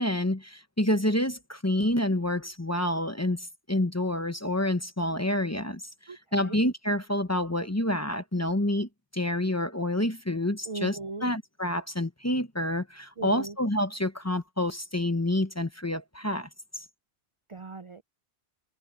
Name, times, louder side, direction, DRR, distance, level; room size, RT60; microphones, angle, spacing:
voice 1, 0.0-5.8 6.1-16.5 16.8-16.9, left 1 dB, 15° left, 0.9 m, -28 dB
voice 2, 6.1-6.6 10.7-11.3 13.2-13.6 17.5-18.0, right 3 dB, 40° right, 0.5 m, -38 dB
omnidirectional pair, 1.1 m